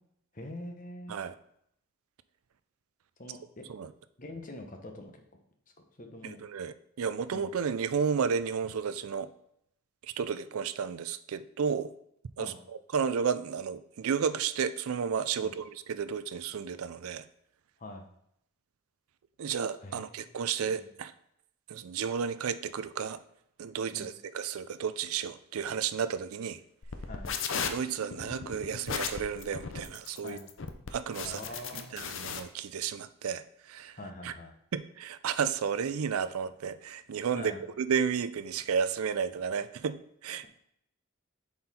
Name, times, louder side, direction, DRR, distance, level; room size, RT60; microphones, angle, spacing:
voice 1, 0.3-1.1 3.2-3.7 4.2-5.2 6.0-6.4 7.3-7.5 12.4-12.6 15.4-15.5 17.8-18.0 19.8-20.3 20.7-20.9 23.9-24.1 27.1-27.3 30.2-30.4 31.2-32.0 34.0-34.5 37.3-37.6, left 1 dB, 40° left, 4 dB, 1.0 m, -44 dB
voice 2, 6.2-9.3 10.0-11.9 12.4-12.5 12.9-17.2 19.4-21.1 21.7-23.2 23.6-26.6 27.6-30.4 30.9-31.4 31.9-34.0 34.2-34.3 34.7-37.5 37.8-40.4, right 6 dB, 85° right, 13 dB, 0.4 m, -32 dB
sound 1, 26.8-32.4, left 6 dB, 60° left, 0.6 m, -36 dB
7.6 x 4.3 x 4.2 m, 0.73 s
head